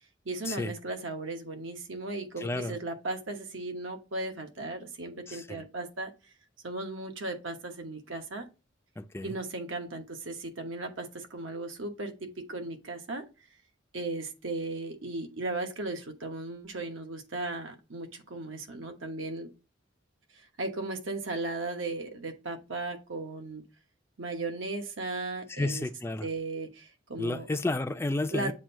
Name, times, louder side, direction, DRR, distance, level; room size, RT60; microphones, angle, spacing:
voice 1, 0.2-6.1 6.6-8.5 9.2-13.3 13.9-19.5 20.3-23.6 24.2-25.8 26.2-27.5 28.3-28.5, right 2 dB, 80° right, 1.1 m, -36 dB
voice 2, 2.4-2.8 5.3-5.6 9.0-9.3 25.5-26.3 27.2-28.5, left 2 dB, 15° left, 0.4 m, -32 dB
7.5 x 2.6 x 5.5 m
head